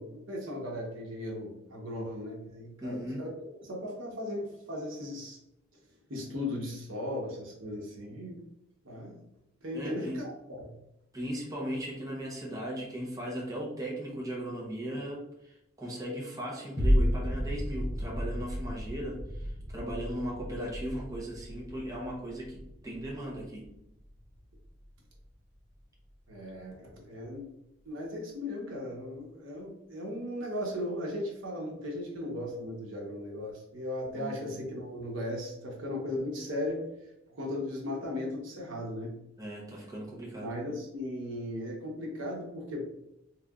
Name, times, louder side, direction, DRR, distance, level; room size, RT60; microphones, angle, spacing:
voice 1, 0.0-3.3 3.6-5.4 6.1-8.4 8.8-9.2 9.6-10.8 26.3-27.5 27.8-36.9 37.3-39.1 40.4-42.8, left 1 dB, 75° right, -1 dB, 1.0 m, -37 dB
voice 2, 2.8-3.2 9.7-10.2 11.1-23.7 34.1-34.4 39.4-40.5, equal, 20° right, -4 dB, 0.9 m, -37 dB
sound 1, 16.8-25.3 25.8-25.9, equal, 25° left, 0.7 m, -33 dB
3.7 x 3.3 x 2.4 m, 0.83 s
head